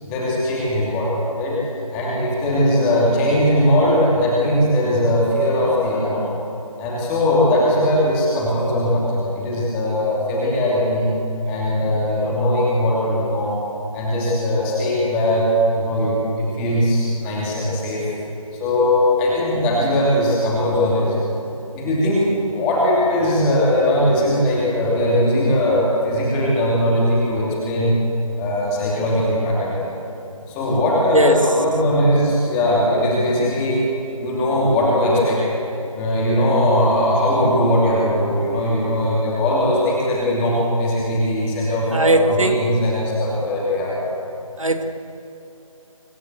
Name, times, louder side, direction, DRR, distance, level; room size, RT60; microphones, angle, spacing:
voice 1, 0.0-1.6 1.9-6.3 6.8-11.1 11.4-13.6 13.9-15.5 15.7-18.1 18.5-21.2 21.7-27.9 28.4-29.9 30.5-33.8 34.2-35.4 35.9-44.0, left 1 dB, 10° left, -5 dB, 2.9 m, -19 dB
voice 2, 41.9-42.6 44.6-44.9, right 2 dB, 65° right, 7 dB, 1.8 m, -18 dB
25.5 x 15.0 x 8.2 m, 2.8 s
figure-of-eight pair, 165°, 18 cm